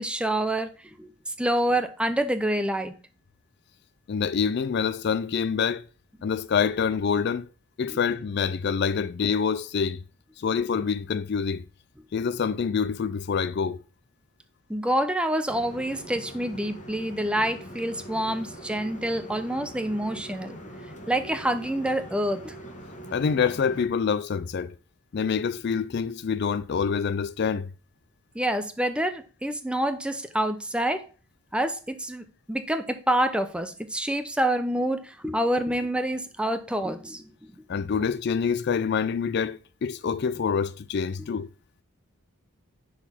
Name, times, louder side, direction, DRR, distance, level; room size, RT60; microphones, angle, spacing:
voice 1, 0.0-2.9 7.9-8.0 14.7-20.6 21.1-22.6 28.3-31.1 31.5-37.3, right 1 dB, 5° right, 0.5 m, -27 dB
voice 2, 4.1-5.8 6.2-7.5 7.8-10.0 10.4-11.6 12.1-13.8 23.1-24.7 25.1-27.7 37.7-41.5, left 6 dB, 45° left, 0.3 m, -26 dB
sound 1, 15.5-23.8, right 1 dB, 30° left, 1.4 m, -42 dB
10.0 x 4.0 x 4.3 m
head